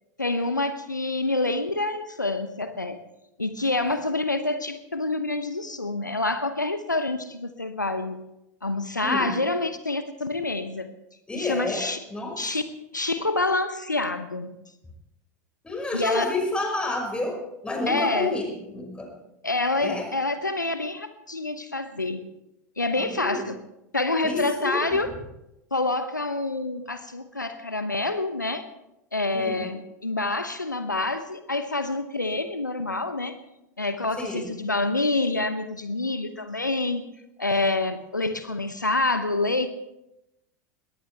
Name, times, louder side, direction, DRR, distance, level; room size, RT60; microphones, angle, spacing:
voice 1, 0.2-3.0 3.4-8.2 8.6-10.9 11.3-12.0 12.4-12.6 12.9-14.6 15.9-16.3 17.9-18.3 19.4-22.3 22.8-23.5 23.9-25.1 25.7-28.7 29.1-33.4 33.8-37.0 37.4-39.7, left 2 dB, 85° left, 11 dB, 0.9 m, -27 dB
voice 2, 9.0-9.3 11.3-11.8 12.1-12.4 15.6-19.1 19.8-20.1 22.9-23.5 24.2-25.0 29.3-29.7 34.2-34.5, left 2 dB, 10° left, 2 dB, 5.6 m, -29 dB
20.5 x 18.5 x 3.4 m, 0.87 s
figure-of-eight pair, 85°, 10 cm